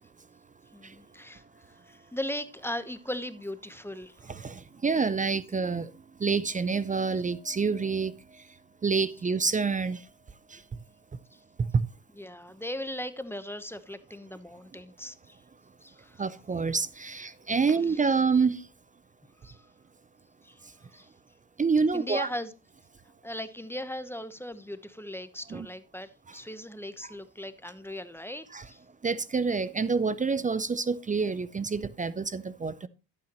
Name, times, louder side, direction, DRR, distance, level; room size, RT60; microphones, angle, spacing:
voice 1, 0.7-1.4 1.9-4.2 11.3-11.4 12.2-15.4 15.8-16.2 17.8-18.0 19.4-19.7 20.4-20.6 20.9-21.1 21.9-22.5 23.2-28.8, left 1 dB, 5° left, 0.9 m, -38 dB
voice 2, 4.3-5.9 6.2-8.1 8.8-10.0 10.5-10.6 16.2-18.6 21.6-22.3 25.5-25.7 28.5-28.6 29.0-32.9, right 5 dB, 20° right, 0.5 m, -27 dB
11.5 x 8.8 x 3.0 m
supercardioid pair, 80°, 44 cm